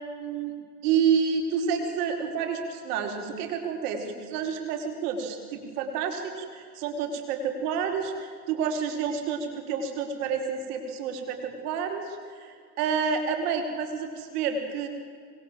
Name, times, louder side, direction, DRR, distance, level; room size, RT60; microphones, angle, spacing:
voice 1, 0.2-0.5 0.8-14.9, right 6 dB, 70° right, 4 dB, 4.9 m, -29 dB
26.5 x 21.5 x 7.8 m, 2.1 s
hypercardioid pair, 80°, 47 cm